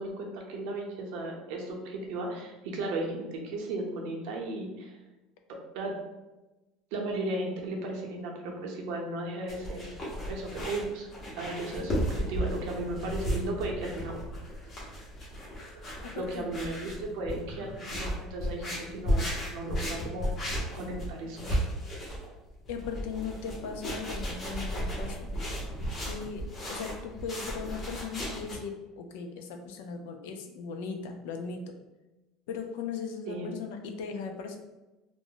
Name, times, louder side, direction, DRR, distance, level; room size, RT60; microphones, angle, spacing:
voice 1, 0.0-5.0 5.5-5.9 6.9-10.0 10.3-14.2 15.7-15.8 16.1-20.3 20.7-21.6 33.3-33.5, right 2 dB, 70° right, 0 dB, 0.7 m, -35 dB
sound 1, 9.5-28.5, equal, 30° left, 0.9 m, -34 dB
voice 2, 16.0-16.5 22.7-25.3 26.0-31.7 32.5-34.6, left 5 dB, 85° left, 4 dB, 0.4 m, -38 dB
2.4 x 2.1 x 3.7 m, 1.1 s
cardioid pair, 145°, 0 cm